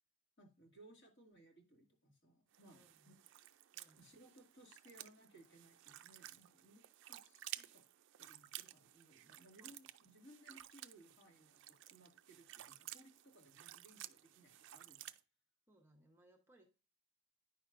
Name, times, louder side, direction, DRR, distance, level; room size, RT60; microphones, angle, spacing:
voice 1, 0.4-3.1 4.0-7.8 8.2-15.1, right 1 dB, 50° left, 1 dB, 2.0 m, -64 dB
sound 1, 2.5-15.2, right 14 dB, 55° right, 0.4 m, -54 dB
voice 2, 2.7-3.1 3.7-4.1 4.4-4.5 9.6-9.7 15.7-16.7, right 1 dB, 10° right, 1 dB, 0.9 m, -69 dB
9.6 x 5.7 x 2.5 m, 0.33 s
head